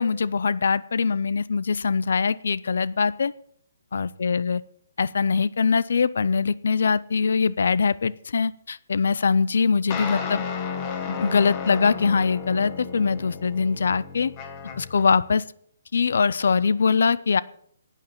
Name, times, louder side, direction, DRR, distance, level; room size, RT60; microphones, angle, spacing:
voice 1, 0.0-3.3 3.9-4.6 5.0-10.4 11.1-14.3 14.8-15.4 15.9-17.4, left 5 dB, 65° left, 19 dB, 0.5 m, -22 dB
sound 1, 9.9-15.1, left 6 dB, 20° left, 1.3 m, -33 dB
11.5 x 9.1 x 6.8 m, 0.65 s
hypercardioid pair, 175°, 0 cm